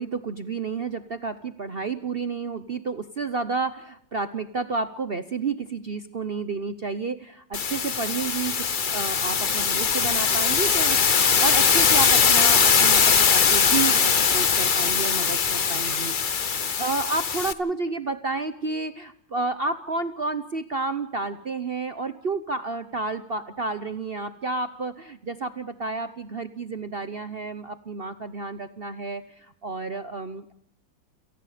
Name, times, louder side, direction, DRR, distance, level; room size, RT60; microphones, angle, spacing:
voice 1, 0.0-30.5, right 3 dB, 60° right, 11 dB, 0.6 m, -31 dB
sound 1, 7.5-17.5, left 6 dB, 60° left, 0.5 m, -21 dB
29.5 x 18.5 x 5.0 m, 0.71 s
omnidirectional pair, 2.3 m